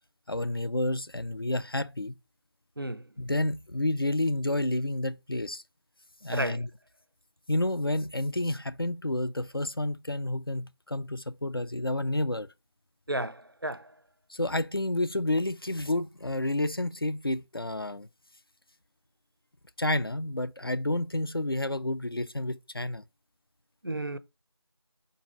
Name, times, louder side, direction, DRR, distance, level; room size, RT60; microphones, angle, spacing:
voice 1, 0.3-2.2 3.2-5.6 6.2-6.7 7.5-12.5 14.3-18.1 19.8-23.0, left 1 dB, 55° left, 0.4 m, -30 dB
voice 2, 13.1-13.9 23.8-24.2, right 1 dB, 50° right, 0.4 m, -32 dB
4.1 x 2.6 x 4.6 m
figure-of-eight pair, 175°, 15 cm